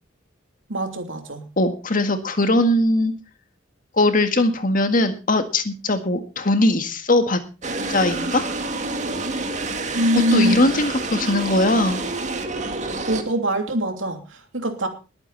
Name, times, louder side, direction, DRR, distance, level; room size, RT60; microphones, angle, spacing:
voice 1, 0.7-1.5 9.9-10.7 13.1-14.9, equal, 80° right, 5 dB, 2.9 m, -23 dB
voice 2, 1.6-3.2 4.0-7.4 7.9-8.5 10.1-12.0, left 1 dB, 45° left, 8 dB, 1.8 m, -20 dB
sound 1, 7.6-13.2, right 3 dB, 35° right, 2.0 m, -28 dB
21.0 x 8.9 x 4.1 m, 0.32 s
head